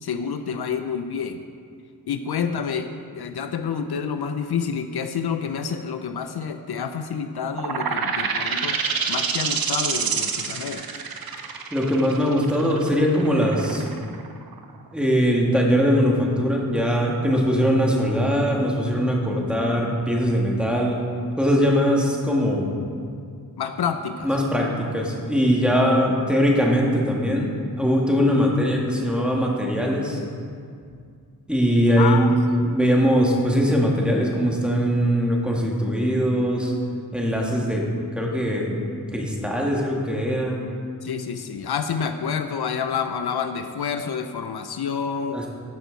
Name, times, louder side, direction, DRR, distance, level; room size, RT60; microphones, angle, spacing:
voice 1, 0.0-1.4 2.1-8.8 9.1-10.9 23.6-24.3 32.0-32.4 41.0-45.4, left 6 dB, 75° left, 8 dB, 0.6 m, -28 dB
sound 1, 7.5-14.9, right 5 dB, 65° right, 0.8 m, -27 dB
voice 2, 11.7-13.9 14.9-21.0 21.4-22.7 24.2-27.5 27.8-30.2 31.5-36.7 37.1-37.9 38.2-38.8 39.1-40.6 45.3-45.5, equal, 5° right, -2 dB, 2.1 m, -21 dB
13.5 x 6.2 x 4.0 m, 2.2 s
cardioid pair, 50°, 39 cm